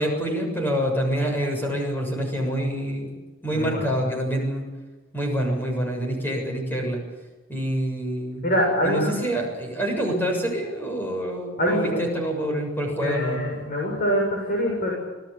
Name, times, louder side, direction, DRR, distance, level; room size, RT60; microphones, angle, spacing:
voice 1, 0.0-3.1 3.4-4.6 5.1-7.0 7.5-8.4 8.8-13.4, equal, 10° left, 2 dB, 7.0 m, -26 dB
voice 2, 3.5-3.8 8.4-9.2 11.6-12.0 13.0-14.9, equal, 45° left, -2 dB, 7.1 m, -24 dB
27.0 x 19.0 x 8.6 m, 1.2 s
head